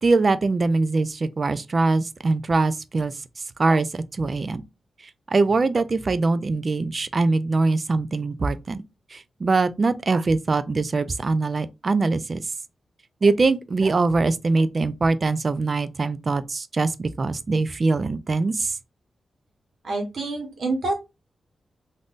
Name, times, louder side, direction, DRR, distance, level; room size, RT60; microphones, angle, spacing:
voice 1, 0.0-3.1 3.6-4.6 5.3-8.8 9.1-12.5 13.2-18.8, right 3 dB, 45° right, 0.3 m, -22 dB
voice 2, 19.8-20.9, right 2 dB, 70° right, 1.1 m, -27 dB
3.5 x 2.5 x 2.4 m
cardioid pair, 90°, 0 cm